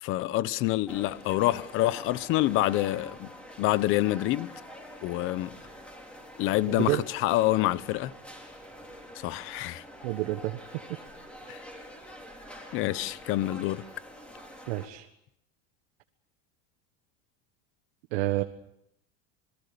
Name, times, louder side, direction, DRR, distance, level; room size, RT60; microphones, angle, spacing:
voice 1, 0.0-3.3 3.6-4.5 5.0-5.6 6.4-8.1 9.1-9.8 11.5-11.6 12.7-13.8, left 16 dB, 40° left, 0.9 m, -27 dB
sound 1, 0.9-14.9, equal, 5° left, 4.0 m, -46 dB
voice 2, 10.0-10.8 11.5-11.6 14.7-15.1 18.1-18.4, right 17 dB, 75° right, 1.6 m, -29 dB
27.0 x 22.5 x 6.9 m
cardioid pair, 170°, 32 cm